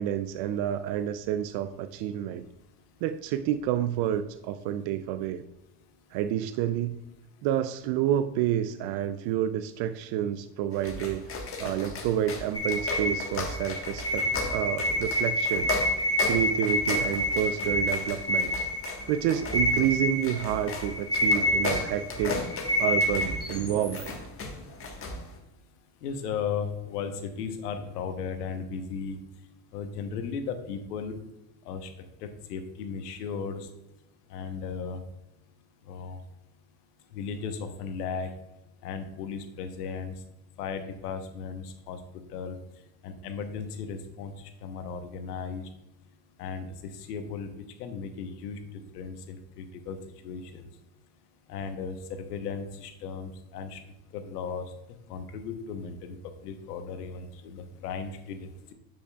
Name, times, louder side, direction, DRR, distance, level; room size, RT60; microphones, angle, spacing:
voice 1, 0.0-2.5 3.0-5.4 6.1-6.9 7.4-15.7 16.3-18.5 19.1-22.4 22.8-24.1, right 11 dB, 55° right, 10 dB, 0.5 m, -29 dB
sound 1, 10.7-25.4, left 3 dB, 30° left, 1.4 m, -36 dB
sound 2, 12.5-24.1, left 1 dB, 10° left, 1.4 m, -28 dB
voice 2, 26.0-29.2 29.7-31.2 31.7-31.9 32.2-33.7 34.3-35.0 35.9-36.2 37.1-38.3 38.8-40.1 40.6-42.0 42.3-42.6 43.0-44.3 44.6-45.6 46.4-47.5 47.8-48.6 48.9-50.0 50.2-50.6 51.5-53.8 54.1-54.6 55.1-56.2 56.4-58.7, left 6 dB, 85° left, 7 dB, 1.1 m, -36 dB
9.7 x 5.3 x 2.3 m, 0.94 s
supercardioid pair, 95°, 46 cm